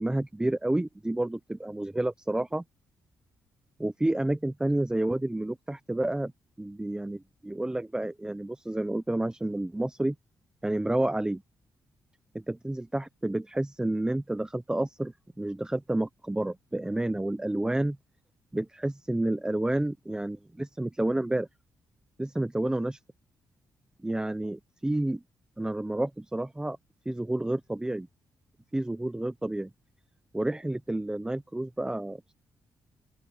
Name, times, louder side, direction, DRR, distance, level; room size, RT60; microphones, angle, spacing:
voice 1, 0.0-2.6 3.8-6.3 6.6-10.1 10.6-11.4 12.3-18.0 18.5-21.5 22.2-23.0 24.0-25.2 25.6-26.8 27.0-28.1 28.7-29.7 30.3-32.3, right 1 dB, 10° right, 0.9 m, -30 dB
open air
cardioid pair, 75°, 7 cm